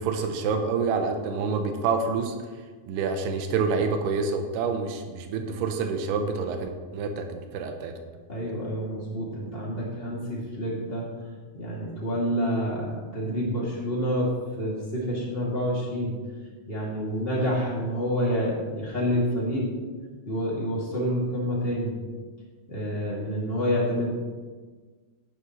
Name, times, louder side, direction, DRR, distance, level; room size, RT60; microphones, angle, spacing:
voice 1, 0.0-2.4 2.9-7.9 17.4-17.6, right 5 dB, 90° right, 6 dB, 2.9 m, -27 dB
voice 2, 8.3-11.1 11.5-14.3 14.6-16.2 16.7-19.6 20.2-21.9 22.7-24.1, equal, 20° left, -5 dB, 1.8 m, -28 dB
12.5 x 9.8 x 3.1 m, 1.4 s
omnidirectional pair, 4.6 m